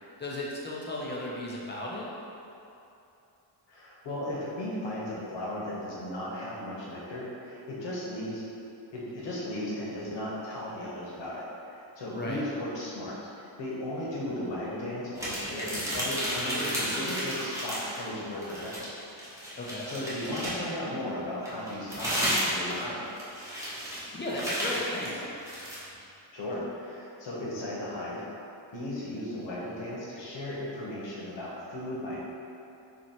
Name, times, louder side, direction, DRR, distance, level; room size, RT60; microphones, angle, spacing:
voice 1, 0.2-2.1 12.1-12.4 19.5-19.9 24.1-25.3, left 1 dB, 25° left, -4 dB, 0.4 m, -35 dB
voice 2, 3.7-8.4 8.9-18.9 19.8-23.2 26.3-28.2 28.7-32.2, left 1 dB, 65° left, -5 dB, 1.1 m, -36 dB
sound 1, 15.1-18.1 18.4-20.7 21.4-25.8, equal, 5° right, 0.8 m, -33 dB
3.0 x 2.9 x 4.1 m, 2.8 s
wide cardioid pair, 150°, 47 cm